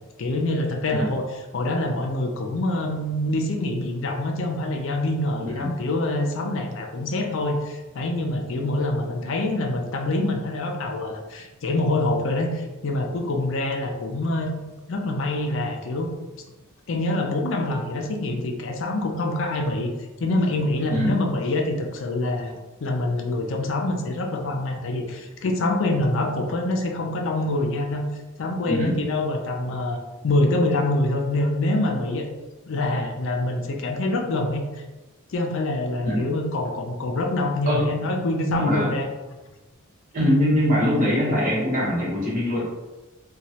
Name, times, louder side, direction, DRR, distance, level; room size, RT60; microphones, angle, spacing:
voice 1, 0.2-1.2 1.5-14.5 14.9-16.1 16.9-19.9 20.2-22.5 22.8-28.0 28.4-30.0 30.2-32.3 32.6-34.8 35.3-39.1, left 2 dB, 60° left, 2 dB, 0.4 m, -25 dB
voice 2, 5.5-5.8 20.9-21.1 28.7-28.9 36.0-36.3 37.7-38.0 38.5-38.9 40.1-42.6, equal, 40° right, -5 dB, 1.0 m, -22 dB
3.0 x 2.2 x 2.7 m, 1.1 s
head